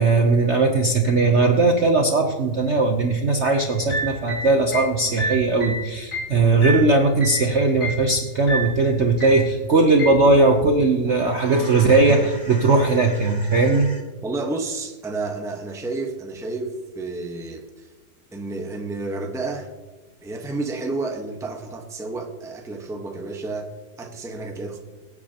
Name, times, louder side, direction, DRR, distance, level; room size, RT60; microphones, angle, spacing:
voice 1, 0.0-14.0, right 3 dB, 50° right, 4 dB, 0.9 m, -19 dB
sound 1, 3.7-7.5 7.8-8.1 8.5-8.8 9.2-9.5 10.0-10.3, right 1 dB, 20° left, 3.1 m, -29 dB
voice 2, 14.2-17.7 18.3-19.7 20.2-23.7 24.0-24.8, right 3 dB, ahead, 3 dB, 0.8 m, -30 dB
24.0 x 8.5 x 2.9 m, 1.2 s
omnidirectional pair, 2.0 m